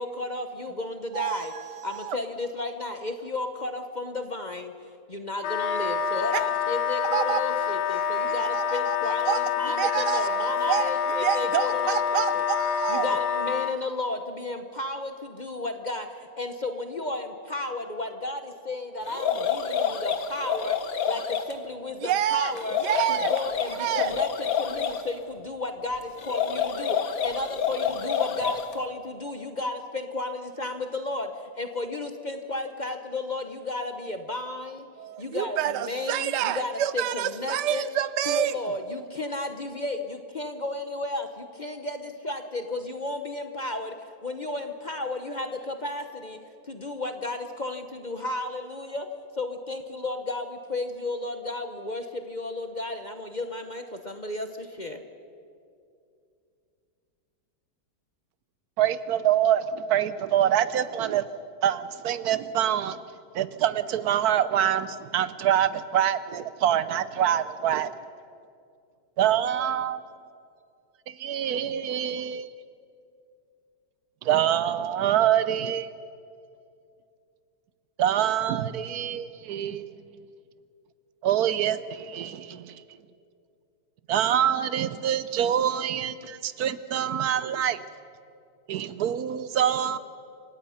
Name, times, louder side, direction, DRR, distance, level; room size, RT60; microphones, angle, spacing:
voice 1, 0.0-1.5 1.8-4.7 5.1-12.4 12.9-20.8 21.1-22.8 23.1-34.9 35.2-37.8 38.2-43.9 44.2-46.4 46.7-49.1 49.4-55.0, left 2 dB, 35° left, 0.8 m, -33 dB
voice 2, 1.1-2.2 6.3-6.4 7.1-7.6 8.0-8.1 8.4-9.4 9.6-13.1 22.0-22.5 22.8-23.3 23.8-24.1 35.0-38.6, right 11 dB, 90° right, 1.3 m, -28 dB
Wind instrument woodwind instrument, 5.4-13.7, left 7 dB, 80° left, 1.4 m, -27 dB
sound 1, 19.1-21.5 22.5-25.0 26.2-28.7, left 7 dB, 60° left, 1.5 m, -28 dB
voice 3, 58.8-61.3 61.6-63.0 63.3-67.9 69.2-70.0 71.1-72.5 74.2-75.9 78.0-79.9 81.2-82.8 84.1-87.8 88.7-90.0, right 10 dB, 70° right, 1.1 m, -25 dB
27.5 x 17.0 x 5.7 m
omnidirectional pair, 1.8 m